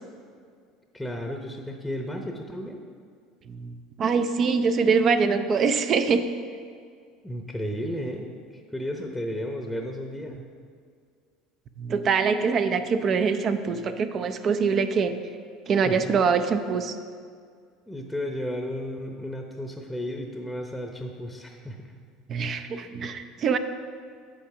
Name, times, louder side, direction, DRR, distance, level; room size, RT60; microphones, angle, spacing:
voice 1, 0.9-2.8 7.2-8.3 8.5-10.4 15.8-16.1 17.9-21.9, equal, 5° left, 3 dB, 0.8 m, -33 dB
voice 2, 3.5-6.3 11.8-15.1 15.7-16.9 22.3-23.6, right 5 dB, 45° right, 9 dB, 0.5 m, -24 dB
8.4 x 5.0 x 4.8 m, 2.1 s
hypercardioid pair, 75°, 0 cm